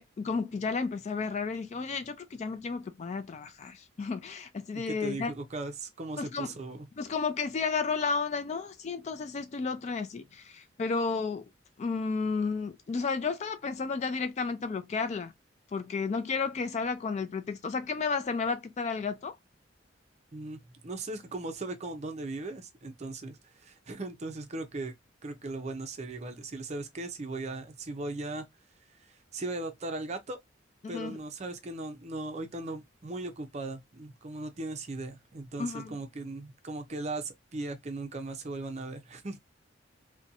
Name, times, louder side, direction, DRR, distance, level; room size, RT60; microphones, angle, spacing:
voice 1, 0.0-5.3 6.2-6.5 7.0-11.4 11.8-15.3 15.7-19.4 30.8-31.2 35.6-35.9, left 4 dB, 35° left, 0.3 m, -32 dB
voice 2, 4.7-6.9 20.3-24.9 25.2-28.5 29.3-30.4 30.9-39.4, right 2 dB, 35° right, 0.5 m, -38 dB
2.6 x 2.1 x 2.6 m
head